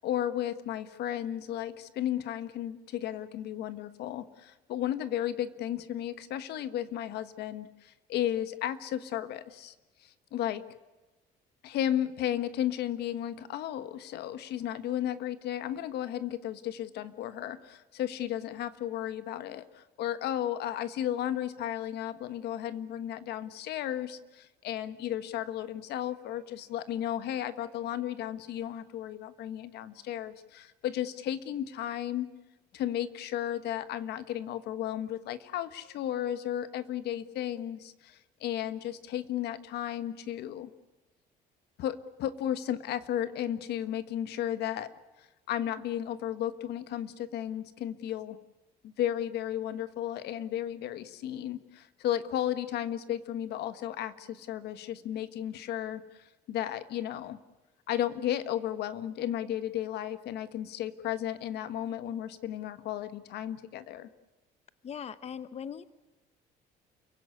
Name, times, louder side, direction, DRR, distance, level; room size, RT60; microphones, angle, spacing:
voice 1, 0.0-9.7 10.0-10.6 11.6-32.3 32.7-40.7 41.8-44.9 45.2-48.4 48.8-56.0 56.5-57.4 57.9-64.1, left 11 dB, 75° left, 12 dB, 1.4 m, -34 dB
voice 2, 64.8-65.8, left 8 dB, 40° left, 14 dB, 0.9 m, -39 dB
29.0 x 16.5 x 9.6 m, 1.2 s
cardioid pair, 110°, 17 cm